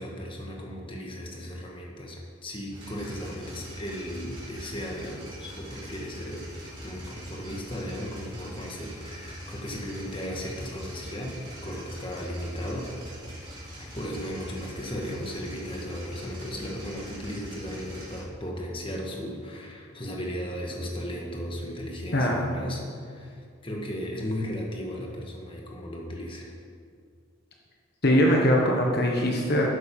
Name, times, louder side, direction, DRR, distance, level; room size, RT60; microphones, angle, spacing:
voice 1, 0.0-6.4 6.8-12.9 13.8-26.5, equal, 25° left, -1 dB, 1.6 m, -36 dB
sound 1, 2.7-18.2, equal, 25° right, 3.5 m, -42 dB
voice 2, 22.1-22.4 28.0-29.7, equal, 50° left, -1 dB, 1.3 m, -22 dB
12.5 x 9.2 x 5.4 m, 2.2 s
head